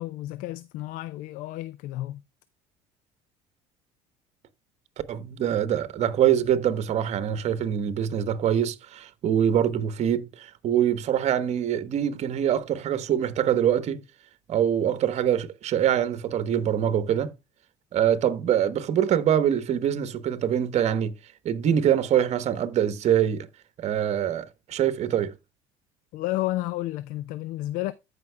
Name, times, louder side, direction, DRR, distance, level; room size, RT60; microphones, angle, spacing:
voice 1, 0.0-2.2 26.1-27.9, left 16 dB, 70° left, 0.5 m, -31 dB
voice 2, 5.1-14.0 14.5-17.3 17.9-21.1 21.4-23.5 23.8-25.3, right 9 dB, 50° right, 1.1 m, -24 dB
14.5 x 5.3 x 2.2 m
supercardioid pair, 90°, 15 cm